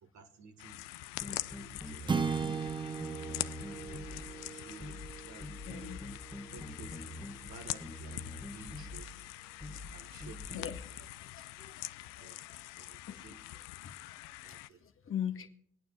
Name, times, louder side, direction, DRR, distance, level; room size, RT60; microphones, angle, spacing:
voice 1, 0.0-1.1 1.4-2.3 3.7-6.1 6.5-9.3 9.9-10.7 12.0-12.4 12.8-13.7 14.4-14.8, right 5 dB, 55° right, 1.4 m, -55 dB
sound 1, 0.6-14.7, left 17 dB, 70° left, 0.5 m, -44 dB
sound 2, 1.2-2.7 3.0-4.3 4.8-5.1 5.4-7.5 7.8-9.1 9.6-9.9 10.2-10.8, left 2 dB, 5° left, 1.4 m, -45 dB
sound 3, 2.1-6.5, right 5 dB, 15° right, 0.5 m, -37 dB
voice 2, 5.7-6.0 10.5-10.8 11.2-13.2 13.8-15.5, left 9 dB, 40° left, 1.1 m, -42 dB
26.0 x 9.2 x 2.3 m
hypercardioid pair, 60°, 34 cm